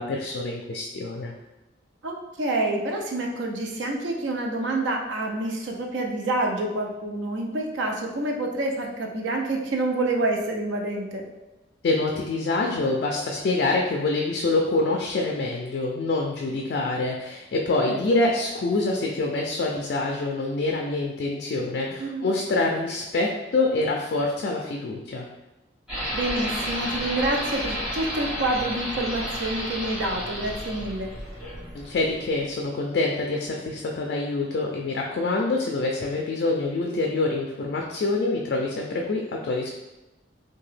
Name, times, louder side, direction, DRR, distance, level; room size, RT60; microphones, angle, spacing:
voice 1, 0.0-1.3 11.8-25.3 31.7-39.7, left 2 dB, 55° left, 0 dB, 0.3 m, -26 dB
voice 2, 2.0-11.3 17.8-18.0 22.0-22.3 26.1-31.1, right 2 dB, 75° right, 1 dB, 0.5 m, -27 dB
sound 1, 25.9-32.5, equal, 5° right, 1.2 m, -32 dB
2.7 x 2.2 x 3.2 m, 1.0 s
head